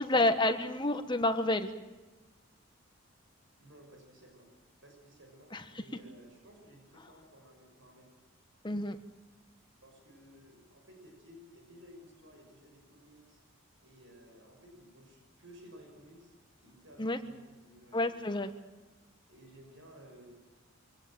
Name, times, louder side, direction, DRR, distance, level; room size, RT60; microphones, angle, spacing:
voice 1, 0.0-1.7 5.5-5.8 8.6-9.0 17.0-17.2 17.9-18.5, left 2 dB, 20° left, 8 dB, 1.3 m, -29 dB
voice 2, 3.6-4.5 4.8-8.1 9.8-13.4 13.8-18.1 19.3-20.4, equal, 60° right, 2 dB, 6.2 m, -56 dB
24.0 x 17.5 x 9.0 m, 1.2 s
head